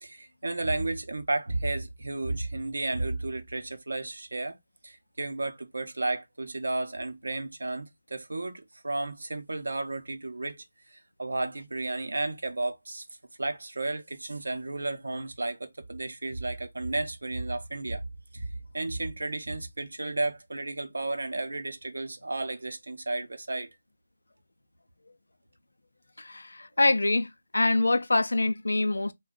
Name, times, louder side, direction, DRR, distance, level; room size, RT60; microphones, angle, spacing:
voice 1, 0.0-4.6 4.8-10.6 10.9-13.0 13.4-18.0 18.3-18.4 18.7-23.7, right 2 dB, 80° right, 0.6 m, -33 dB
voice 2, 26.2-29.1, left 2 dB, 80° left, 0.4 m, -25 dB
2.5 x 2.2 x 3.6 m
figure-of-eight pair, 160°, 0 cm